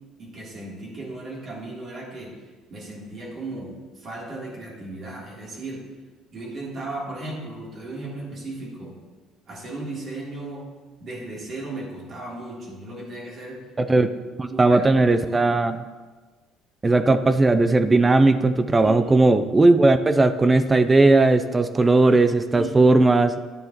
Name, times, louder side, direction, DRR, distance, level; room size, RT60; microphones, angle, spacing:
voice 1, 0.2-2.3 2.7-5.8 6.3-8.9 9.5-10.7 11.0-14.0 14.5-15.5 18.8-19.2 22.5-23.0, right 2 dB, 45° right, -4 dB, 3.0 m, -36 dB
voice 2, 13.8-14.1 14.4-15.8 16.8-23.4, right 2 dB, 15° right, 11 dB, 0.4 m, -17 dB
11.0 x 9.4 x 2.9 m, 1.3 s
cardioid pair, 115°, 0 cm